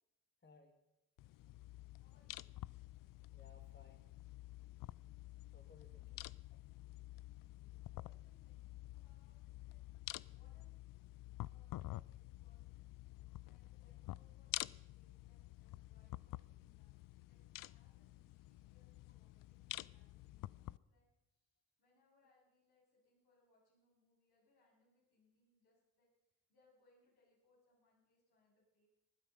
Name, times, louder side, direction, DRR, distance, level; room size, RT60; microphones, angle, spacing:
voice 1, 0.4-0.8 3.3-4.1 5.5-6.6 7.7-7.8, left 3 dB, 30° left, 6 dB, 1.8 m, -65 dB
sound 1, 1.2-20.8, left 16 dB, 60° left, 0.5 m, -50 dB
voice 2, 2.0-2.4 7.3-9.8 10.3-10.8 11.4-21.1 21.3-26.1 26.5-28.9, left 2 dB, 80° left, -4 dB, 7.3 m, -77 dB
20.0 x 9.7 x 5.6 m, 0.90 s
hypercardioid pair, 45°, 37 cm